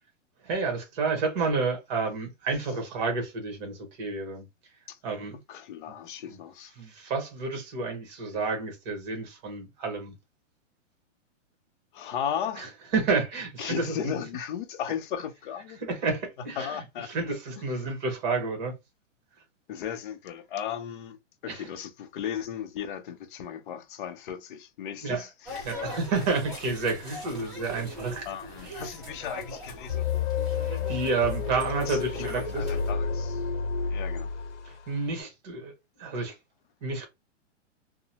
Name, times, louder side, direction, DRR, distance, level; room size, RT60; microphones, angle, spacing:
voice 1, 0.4-4.5 5.0-5.4 5.9-6.0 6.3-6.4 6.8-10.1 12.6-12.7 12.9-14.1 15.8-16.8 17.1-18.7 21.5-21.7 25.0-25.2 25.6-28.3 28.6-28.8 30.6-32.6 34.6-36.4 36.8-37.1, right 4 dB, 35° right, 1.1 m, -30 dB
voice 2, 5.5-6.7 11.9-12.7 13.6-15.8 16.6-17.1 17.6-17.7 19.7-21.2 21.4-25.8 28.2-30.1 31.8-33.5 33.9-34.3, left 8 dB, 45° left, 0.5 m, -36 dB
sound 1, 25.5-32.9, left 1 dB, ahead, 1.4 m, -41 dB
sound 2, 29.9-34.9, left 6 dB, 70° left, 0.8 m, -30 dB
2.8 x 2.0 x 2.8 m
hypercardioid pair, 155°, 37 cm